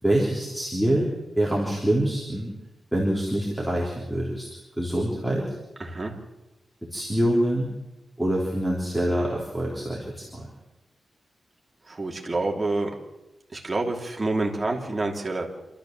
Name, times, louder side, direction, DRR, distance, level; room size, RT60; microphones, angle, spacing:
voice 1, 0.0-1.1 1.4-2.5 2.9-4.5 4.8-5.6 6.9-7.7 8.2-10.5, right 1 dB, ahead, -5 dB, 3.6 m, -25 dB
voice 2, 5.8-6.2 11.9-12.9 13.5-15.5, right 2 dB, 20° right, 0 dB, 2.9 m, -27 dB
27.0 x 13.5 x 7.5 m, 1.0 s
wide cardioid pair, 160°, 0 cm